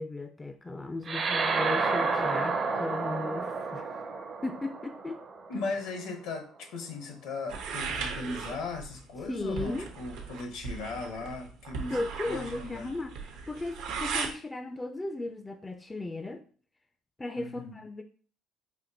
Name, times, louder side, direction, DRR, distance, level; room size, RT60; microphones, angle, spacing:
voice 1, 0.0-4.0 4.4-5.2 9.3-9.9 11.9-13.1 13.5-16.4 17.2-18.0, left 2 dB, 15° left, 7 dB, 0.3 m, -36 dB
sound 1, 1.0-5.8, right 4 dB, 45° right, 0.5 m, -30 dB
voice 2, 5.5-12.9 17.4-17.8, left 3 dB, 75° left, 5 dB, 0.8 m, -38 dB
sound 2, 7.5-14.3, right 5 dB, 80° right, 0.7 m, -37 dB
4.2 x 2.5 x 2.7 m, 0.42 s
supercardioid pair, 95°, 0 cm